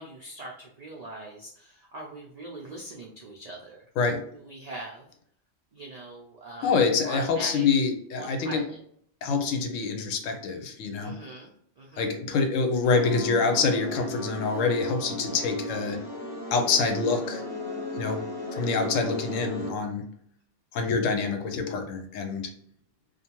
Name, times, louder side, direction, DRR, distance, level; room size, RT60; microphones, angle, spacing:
voice 1, 0.0-5.1 5.7-6.7 7.0-7.7 8.2-8.8 11.0-12.1, right 2 dB, 85° right, -2 dB, 0.3 m, -42 dB
voice 2, 6.6-8.6 9.2-11.1 12.0-16.0 16.5-17.4 18.0-18.2 18.5-20.0 20.7-22.5, left 4 dB, 90° left, 5 dB, 0.9 m, -26 dB
sound 1, 12.8-19.7, left 1 dB, 55° left, 0.9 m, -35 dB
2.5 x 2.2 x 2.9 m, 0.65 s
omnidirectional pair, 1.3 m